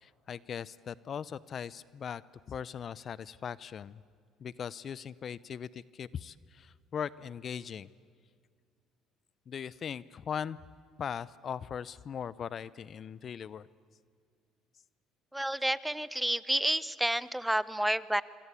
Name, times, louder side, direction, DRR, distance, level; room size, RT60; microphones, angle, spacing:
voice 1, 0.0-2.2 2.5-4.0 4.4-7.9 9.5-10.6 11.0-13.7, left 8 dB, 45° left, 20 dB, 0.7 m, -39 dB
voice 2, 15.3-18.2, right 1 dB, 5° right, 18 dB, 0.8 m, -30 dB
26.5 x 24.5 x 8.4 m, 2.1 s
supercardioid pair, 85°, 0 cm